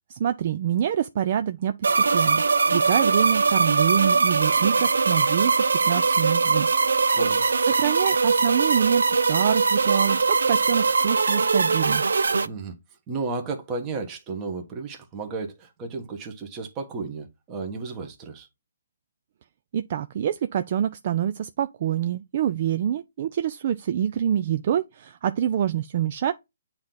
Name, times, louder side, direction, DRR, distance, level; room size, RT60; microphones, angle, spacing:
voice 1, 0.1-6.7 7.1-7.2 7.6-12.1 19.7-26.3, right 9 dB, 40° right, 0.4 m, -26 dB
sound 1, 1.8-12.5, right 4 dB, 90° right, 0.5 m, -21 dB
voice 2, 7.1-7.4 12.4-12.8 13.1-18.5, right 4 dB, 20° right, 1.2 m, -33 dB
8.5 x 2.9 x 3.8 m
hypercardioid pair, 165°, 0 cm